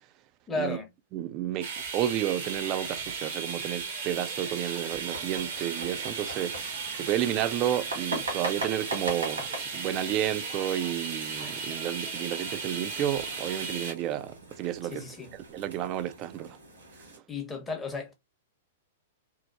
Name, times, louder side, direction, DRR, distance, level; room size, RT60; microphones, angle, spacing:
voice 1, 0.5-0.9 14.8-15.3 17.3-18.1, left 3 dB, 15° left, 0.8 m, -34 dB
voice 2, 1.1-6.5 7.0-9.5 9.7-15.0 15.3-16.6, right 12 dB, 35° right, 0.3 m, -31 dB
sound 1, 1.6-13.9, right 5 dB, 60° right, 0.8 m, -36 dB
sound 2, 5.0-17.2, right 1 dB, 80° right, 1.4 m, -41 dB
3.0 x 2.0 x 2.2 m
figure-of-eight pair, 105°, 0 cm